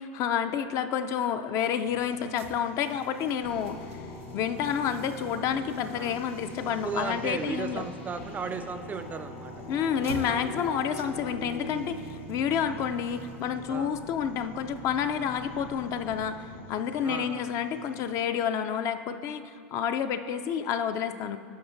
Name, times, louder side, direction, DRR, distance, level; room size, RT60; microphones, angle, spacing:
voice 1, 0.0-3.8 4.3-7.8 9.7-21.4, left 8 dB, 45° left, 10 dB, 0.4 m, -29 dB
sound 1, 1.6-18.2, left 2 dB, 65° left, 1.7 m, -51 dB
sound 2, 2.2-15.3, right 3 dB, 85° right, 0.7 m, -50 dB
sound 3, 3.4-17.5, left 1 dB, 80° left, 1.6 m, -43 dB
voice 2, 6.8-9.5 13.7-13.9 17.0-17.5, right 5 dB, 25° right, 10 dB, 0.3 m, -35 dB
12.0 x 6.2 x 2.6 m, 2.2 s
hypercardioid pair, 90°, 7 cm